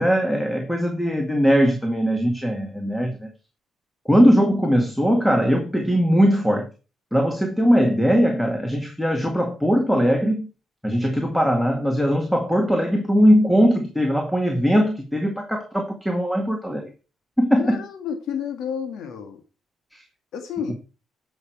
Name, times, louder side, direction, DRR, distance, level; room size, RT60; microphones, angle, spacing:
voice 1, 0.0-3.3 4.1-6.7 7.1-10.5 10.8-16.9 17.4-17.8 19.9-20.0, equal, ahead, 1.9 m, -20 dB
voice 2, 17.6-19.4 20.3-20.7, left 7 dB, 80° left, 1.8 m, -30 dB
15.0 x 6.5 x 4.6 m
cardioid pair, 90°, 0 cm